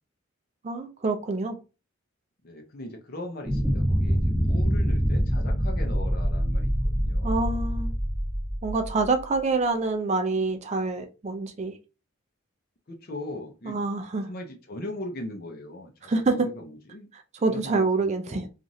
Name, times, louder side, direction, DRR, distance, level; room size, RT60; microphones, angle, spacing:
voice 1, 0.6-1.6 7.2-7.9 8.6-11.8 13.6-14.3 16.0-16.5 17.1-18.5, right 3 dB, 35° right, 0.4 m, -26 dB
voice 2, 2.4-7.4 12.9-13.8 14.3-17.1 17.4-18.5, left 1 dB, 50° left, 0.6 m, -39 dB
sound 1, 3.5-9.2, equal, 5° right, 0.7 m, -25 dB
3.0 x 2.4 x 2.6 m
head